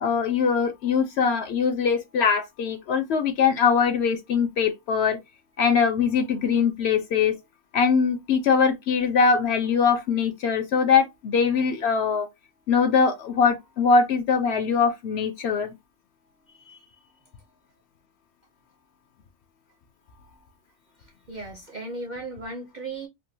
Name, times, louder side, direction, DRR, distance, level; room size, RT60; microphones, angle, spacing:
voice 1, 0.0-5.2 5.6-7.3 7.7-12.3 12.7-15.7, left 6 dB, 65° left, 0.7 m, -22 dB
voice 2, 16.5-17.0 21.0-23.1, right 2 dB, 55° right, 0.5 m, -37 dB
3.6 x 2.3 x 2.6 m
omnidirectional pair, 1.4 m